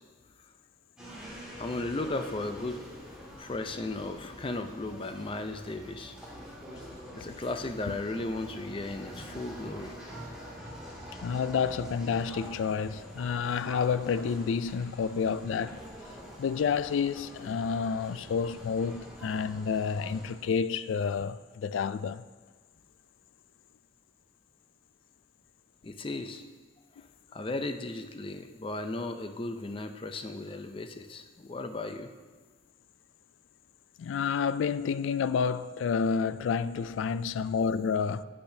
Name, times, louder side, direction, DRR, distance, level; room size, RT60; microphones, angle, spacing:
sound 1, 1.0-20.3, equal, 5° right, 1.9 m, -46 dB
voice 1, 1.6-2.8 3.4-6.2 7.2-10.0 25.8-26.4 27.0-27.1 27.3-32.1, left 2 dB, 30° left, 0.5 m, -35 dB
voice 2, 11.2-15.8 16.4-22.2 34.0-38.2, left 6 dB, 90° left, 0.3 m, -29 dB
10.0 x 8.6 x 2.7 m
head